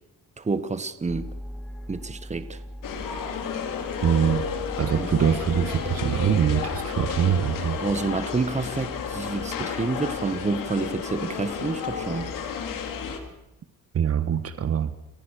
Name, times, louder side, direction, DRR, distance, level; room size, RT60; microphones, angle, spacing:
voice 1, 0.4-1.3 1.9-2.6 5.0-5.1 7.8-12.3, right 4 dB, 20° right, 1.4 m, -28 dB
sound 1, 1.1-13.3, left 1 dB, 5° left, 2.7 m, -41 dB
sound 2, 2.8-13.2, left 7 dB, 80° left, 3.0 m, -32 dB
voice 2, 4.0-4.4 4.8-7.8 13.9-14.9, right 8 dB, 45° right, 1.3 m, -23 dB
29.5 x 15.0 x 6.7 m
cardioid pair, 115°, 32 cm